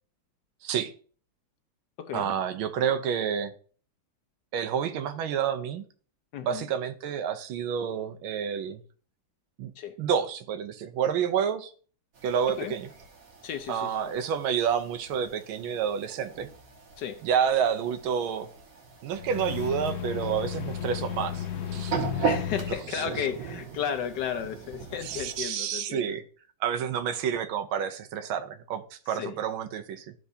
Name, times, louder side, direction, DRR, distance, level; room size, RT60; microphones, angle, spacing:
voice 1, 0.6-0.9 2.1-3.5 4.5-5.8 6.4-8.8 9.6-9.7 10.0-11.7 12.2-12.9 13.7-16.5 17.2-18.5 19.0-21.5 21.7-22.2 22.5-22.6 22.9-23.1 25.0-26.2 26.6-30.1, right 8 dB, 80° right, 1.6 m, -29 dB
voice 2, 2.0-2.3 6.3-6.6 9.8-10.0 12.5-12.7 13.4-14.1 17.0-17.2 22.2-26.2 29.1-29.3, left 8 dB, 70° left, 1.1 m, -34 dB
sound 1, 12.1-25.4, right 5 dB, 45° right, 1.6 m, -39 dB
Thunder, 18.3-18.5 18.9-19.0 19.3-19.4 19.7-19.8 20.1-25.3, right 9 dB, 65° right, 1.3 m, -46 dB
Alien ship opening the door, 19.1-22.8, left 9 dB, 85° left, 0.5 m, -34 dB
13.5 x 4.6 x 2.7 m
omnidirectional pair, 2.2 m